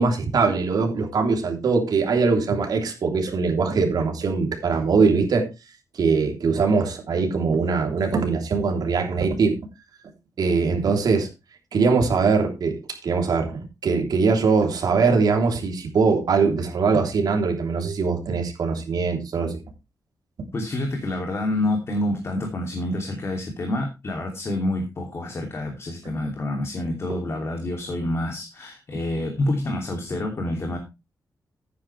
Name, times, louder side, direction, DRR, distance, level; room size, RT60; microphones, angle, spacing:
voice 1, 0.0-5.5 5.9-9.6 10.4-11.3 11.7-19.6, right 4 dB, 75° right, 3.3 m, -22 dB
voice 2, 20.5-30.8, left 1 dB, 40° left, 2.8 m, -27 dB
12.5 x 9.5 x 3.3 m
wide cardioid pair, 160°, 7 cm